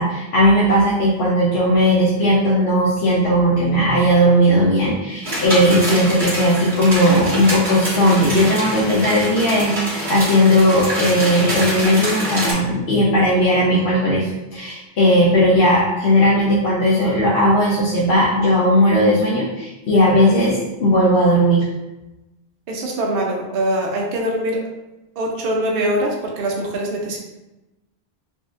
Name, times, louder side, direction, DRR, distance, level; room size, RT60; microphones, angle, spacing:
voice 1, 0.0-21.7, equal, 80° left, -6 dB, 0.9 m, -17 dB
sound 1, 5.2-12.5, equal, 50° right, 1.5 m, -25 dB
voice 2, 22.7-24.6 25.2-27.2, right 1 dB, 65° right, -1 dB, 0.8 m, -23 dB
3.7 x 2.4 x 2.4 m, 0.99 s
omnidirectional pair, 1.1 m